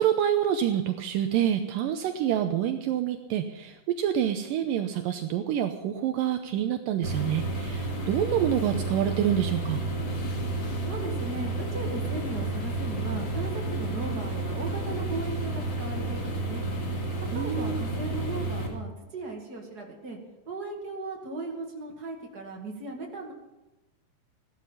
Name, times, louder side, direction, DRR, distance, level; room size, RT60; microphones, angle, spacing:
voice 1, 0.0-9.8 17.3-17.8, right 10 dB, 80° right, 7 dB, 2.3 m, -27 dB
sound 1, 7.0-18.7, right 2 dB, 35° left, 2.5 m, -31 dB
voice 2, 10.8-16.6 17.3-20.2 20.5-23.3, right 3 dB, 30° right, 1 dB, 2.1 m, -37 dB
16.5 x 12.5 x 5.7 m, 1.0 s
omnidirectional pair, 4.2 m